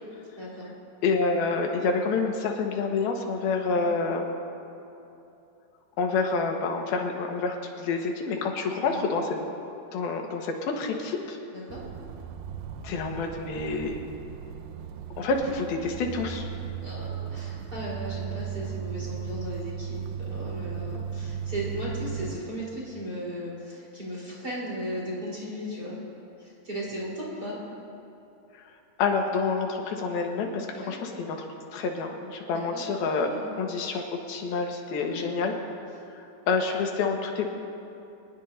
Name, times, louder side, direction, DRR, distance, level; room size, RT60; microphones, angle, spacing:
voice 1, 0.4-0.7 3.7-4.0 8.8-9.1 11.5-11.8 15.8-16.0 16.8-25.9 26.4-27.6 30.7-30.9 32.5-32.8 33.3-33.5 35.0-35.3, equal, 25° right, -6 dB, 4.5 m, -36 dB
voice 2, 1.0-4.3 6.0-9.4 9.9-11.4 12.8-13.9 15.2-16.5 29.0-31.4 31.7-33.3 33.6-35.5 36.5-37.5, left 4 dB, 90° left, 2 dB, 3.3 m, -28 dB
sound 1, 11.7-22.4, right 8 dB, 80° right, 2.5 m, -36 dB
27.0 x 19.5 x 2.7 m, 2.8 s
omnidirectional pair, 4.2 m